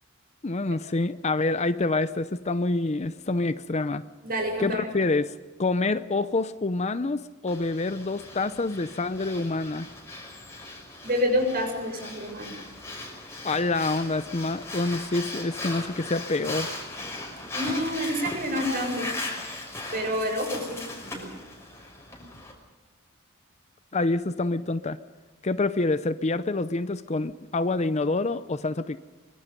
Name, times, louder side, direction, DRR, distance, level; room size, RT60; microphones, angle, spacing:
voice 1, 0.4-4.0 4.6-9.9 13.4-16.7 23.9-25.0 25.4-29.0, left 2 dB, 30° left, 13 dB, 0.6 m, -27 dB
voice 2, 4.2-4.9 11.0-12.6 17.5-19.1 19.9-21.3 22.1-22.2, equal, 45° right, 3 dB, 7.0 m, -28 dB
Breathing, 7.5-22.5, left 2 dB, 15° left, 5.9 m, -38 dB
24.5 x 24.5 x 5.3 m, 1.3 s
head